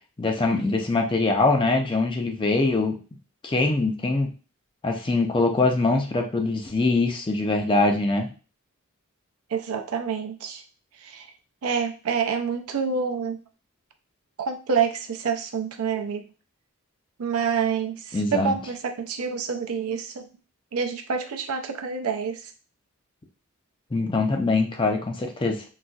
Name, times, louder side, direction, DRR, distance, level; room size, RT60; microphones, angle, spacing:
voice 1, 0.2-3.0 3.4-4.3 4.8-8.3 18.1-18.5 23.9-25.6, left 3 dB, 25° left, 3 dB, 0.4 m, -23 dB
voice 2, 9.5-10.6 11.0-11.3 11.6-13.4 14.4-16.2 17.2-20.3 20.7-22.4, right 6 dB, 85° right, 5 dB, 0.5 m, -27 dB
4.0 x 2.3 x 2.3 m, 0.34 s
head